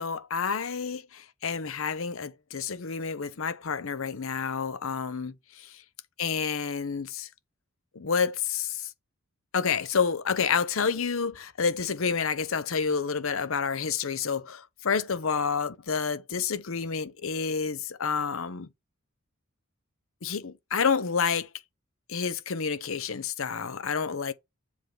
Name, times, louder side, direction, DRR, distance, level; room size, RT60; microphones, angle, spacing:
voice 1, 0.0-5.7 6.2-7.3 7.9-8.9 9.5-18.7 20.2-21.5 22.1-24.3, left 6 dB, 65° left, 0.7 m, -29 dB
7.4 x 3.3 x 3.8 m
head